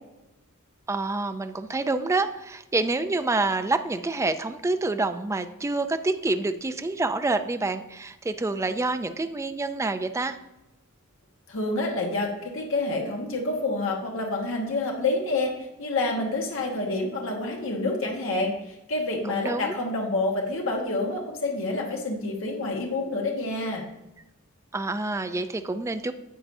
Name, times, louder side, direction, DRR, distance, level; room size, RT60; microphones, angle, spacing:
voice 1, 0.9-10.4 19.2-19.8 24.7-26.1, right 3 dB, 15° right, 9 dB, 0.3 m, -27 dB
voice 2, 11.5-15.5 15.8-18.5 18.9-23.8, left 2 dB, 65° left, 0 dB, 1.4 m, -28 dB
10.0 x 7.7 x 2.6 m, 0.94 s
head